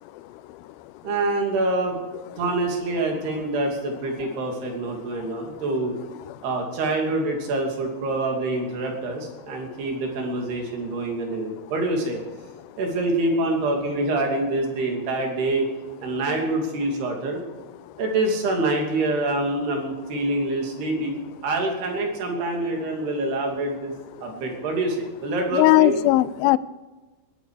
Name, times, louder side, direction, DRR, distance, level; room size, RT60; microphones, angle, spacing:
voice 1, 0.1-0.9 5.2-5.4 6.3-6.4 9.7-9.8 17.8-17.9 24.2-24.3 25.5-26.6, left 17 dB, 80° left, 17 dB, 2.2 m, -21 dB
voice 2, 1.0-2.0 2.4-5.9 6.4-12.2 12.8-15.7 16.0-17.4 18.0-21.1 21.4-23.9 24.2-26.0, right 2 dB, 75° right, 1 dB, 4.9 m, -26 dB
21.5 x 11.5 x 5.0 m, 1.2 s
omnidirectional pair, 4.7 m